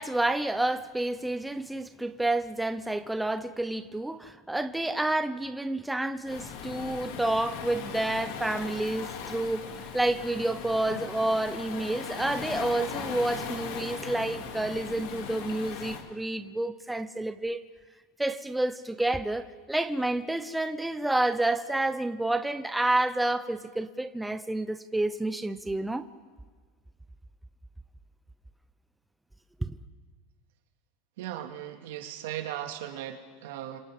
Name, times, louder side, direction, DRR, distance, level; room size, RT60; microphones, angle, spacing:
voice 1, 0.0-17.6 18.2-26.1 29.6-29.8, right 2 dB, 5° right, 0.8 m, -29 dB
Waves surf, 6.2-16.0, left 6 dB, 70° left, 2.8 m, -38 dB
voice 2, 31.2-33.8, right 12 dB, 80° right, 2.2 m, -37 dB
29.5 x 27.0 x 3.7 m
supercardioid pair, 120°, 0 cm